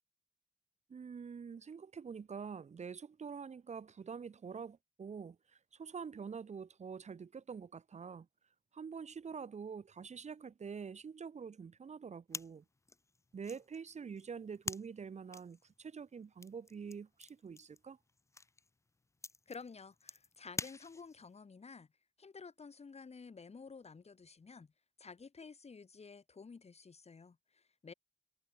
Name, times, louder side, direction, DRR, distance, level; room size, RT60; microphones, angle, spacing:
voice 1, 0.9-8.3 8.7-12.6 13.3-18.0, right 6 dB, 60° right, 1.0 m, -46 dB
sound 1, 12.3-21.3, left 3 dB, 20° left, 0.5 m, -48 dB
voice 2, 19.5-21.9 22.2-24.7 25.0-27.9, left 5 dB, 55° left, 5.2 m, -52 dB
wide cardioid pair, 140°, 13 cm